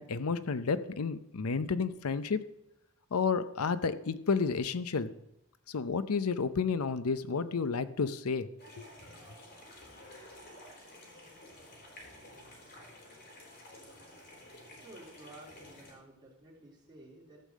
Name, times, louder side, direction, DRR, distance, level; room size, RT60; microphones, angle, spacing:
voice 1, 0.0-2.4 3.1-5.1 5.7-8.5 8.8-8.9, left 5 dB, 85° left, 13 dB, 0.6 m, -31 dB
sound 1, 8.6-15.9, left 1 dB, 50° left, 3.7 m, -52 dB
voice 2, 14.7-17.4, right 1 dB, 20° right, -5 dB, 3.4 m, -53 dB
14.0 x 5.5 x 7.4 m, 0.84 s
head